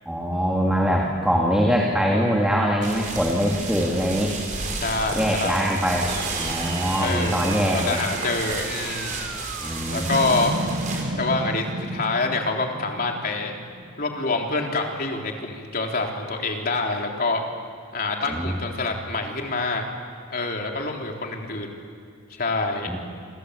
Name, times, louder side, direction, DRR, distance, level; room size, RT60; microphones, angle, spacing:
voice 1, 0.1-4.4 5.1-8.0 9.6-10.1 18.3-18.5 22.9-23.0, equal, 5° right, -2 dB, 2.6 m, -23 dB
sound 1, 2.8-11.0, right 3 dB, 40° right, 5.6 m, -32 dB
voice 2, 4.8-5.7 7.0-9.2 9.9-10.5 11.1-13.5 14.0-17.4 17.9-19.8 20.3-21.7 22.3-22.9, left 3 dB, 45° left, 1 dB, 3.6 m, -26 dB
sound 2, 6.1-14.7, right 2 dB, 55° right, 1.5 m, -33 dB
27.5 x 26.0 x 8.3 m, 2.1 s
head